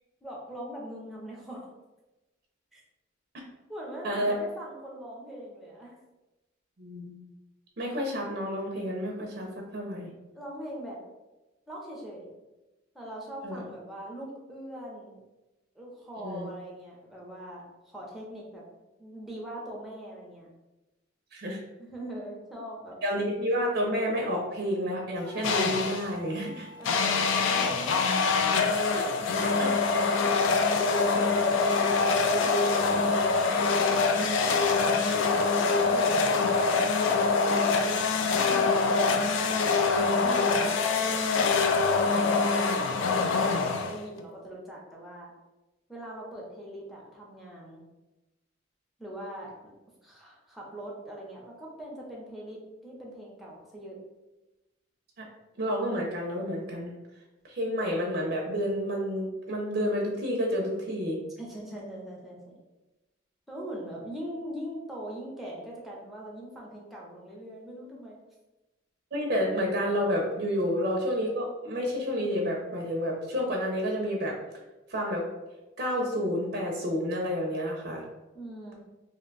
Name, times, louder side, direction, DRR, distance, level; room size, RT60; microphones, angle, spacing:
voice 1, 0.2-1.7 2.7-2.8 3.7-6.0 10.3-11.0 11.7-12.3 12.9-15.2 15.7-18.6 19.0-20.5 21.8-23.0 26.8-28.0 32.1-35.6 35.9-36.2 38.2-45.3 45.9-47.8 49.0-49.5 50.0-54.0 61.4-62.5 63.5-68.2 78.3-78.8, right 1 dB, ahead, -4 dB, 0.6 m, -41 dB
voice 2, 4.0-4.4 6.8-7.2 7.8-10.1 13.4-13.6 16.2-16.5 21.3-21.6 23.0-26.7 28.9-29.1 29.5-29.8 55.2-55.3 55.6-56.9 57.4-61.2 69.1-74.4 74.9-75.2 75.8-78.0, equal, 50° right, 0 dB, 0.5 m, -30 dB
sound 1, 25.1-32.8, left 2 dB, 30° left, 0.9 m, -49 dB
sound 2, 25.4-26.1 26.8-44.2, left 4 dB, 80° left, 0.3 m, -24 dB
2.6 x 2.2 x 3.8 m, 1.1 s
head